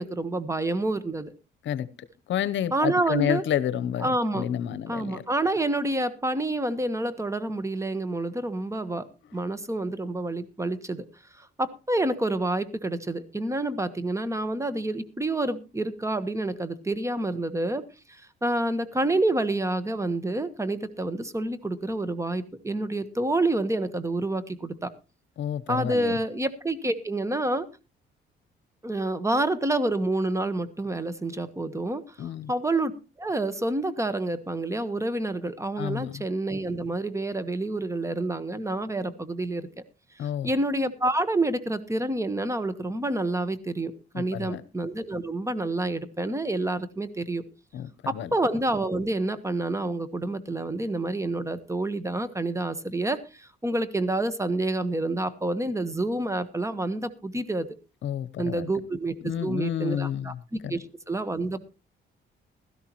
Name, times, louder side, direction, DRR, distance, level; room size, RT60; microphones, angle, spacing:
voice 1, 0.0-1.3 2.7-3.4 4.0-4.5 4.9-9.0 9.3-11.0 11.4-17.8 18.1-24.9 25.7-27.7 28.8-32.9 33.2-39.7 40.2-47.4 48.1-57.7 58.4-59.1 59.4-60.3 60.7-61.6, right 2 dB, 15° right, 13 dB, 1.3 m, -28 dB
voice 2, 2.3-5.2 25.4-26.2 32.2-32.5 35.8-36.2 40.2-40.5 44.1-44.6 47.7-48.3 58.0-58.7 59.2-60.8, left 9 dB, 70° left, 17 dB, 0.9 m, -30 dB
16.0 x 13.0 x 3.0 m, 0.30 s
cardioid pair, 90°, 20 cm